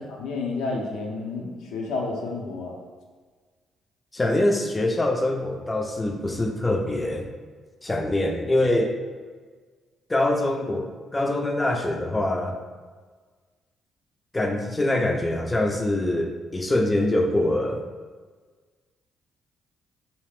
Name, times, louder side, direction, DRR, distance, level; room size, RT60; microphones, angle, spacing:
voice 1, 0.1-2.8, left 3 dB, 90° left, -1 dB, 0.5 m, -30 dB
voice 2, 4.1-7.3 7.8-8.9 10.1-12.6 14.3-17.8, left 1 dB, 20° left, 2 dB, 0.3 m, -24 dB
2.7 x 2.4 x 3.2 m, 1.5 s
cardioid pair, 90°, 0 cm